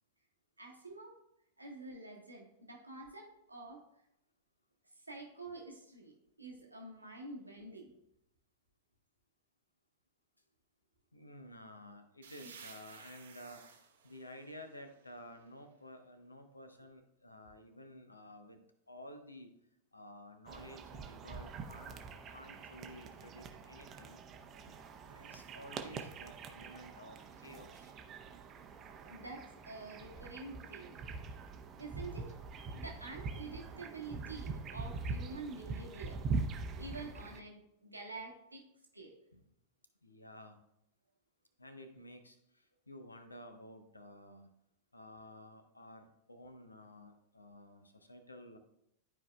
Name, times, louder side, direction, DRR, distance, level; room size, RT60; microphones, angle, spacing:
voice 1, 0.6-1.2 1.6-3.8 4.9-6.1 6.4-7.9 12.4-12.5 29.0-31.0 31.8-32.3 32.7-36.3 36.8-38.6 38.9-39.1, right 3 dB, 85° right, 0 dB, 1.4 m, -48 dB
voice 2, 11.1-13.6 14.0-18.6 18.9-19.5 19.9-24.2 24.6-27.9 39.3-39.4 40.0-40.6 41.6-44.5 44.9-48.6, left 1 dB, 80° left, 7 dB, 0.8 m, -53 dB
sound 1, 12.2-15.8, right 6 dB, 65° right, 0.9 m, -56 dB
sound 2, 20.5-37.4, right 4 dB, 30° right, 0.7 m, -43 dB
12.0 x 4.7 x 2.3 m, 0.80 s
figure-of-eight pair, 90°, 0 cm